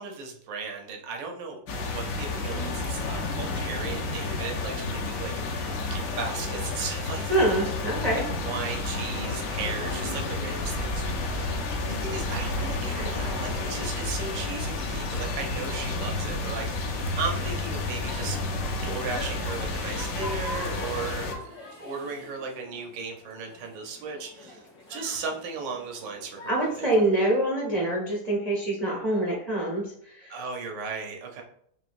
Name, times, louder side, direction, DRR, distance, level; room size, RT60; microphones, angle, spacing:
voice 1, 0.0-7.6 8.4-11.5 11.8-18.4 18.8-24.6 24.9-26.9 30.3-31.4, right 4 dB, 80° right, 2 dB, 1.4 m, -36 dB
sound 1, 1.7-21.3, left 3 dB, 65° left, 0.9 m, -31 dB
voice 2, 7.3-8.3 26.5-30.4, right 1 dB, 50° right, -4 dB, 0.4 m, -25 dB
sound 2, 10.5-20.7, right 1 dB, 40° left, 0.5 m, -39 dB
sound 3, 17.9-27.0, left 1 dB, 80° left, 1.8 m, -44 dB
5.8 x 2.2 x 2.5 m, 0.65 s
omnidirectional pair, 2.0 m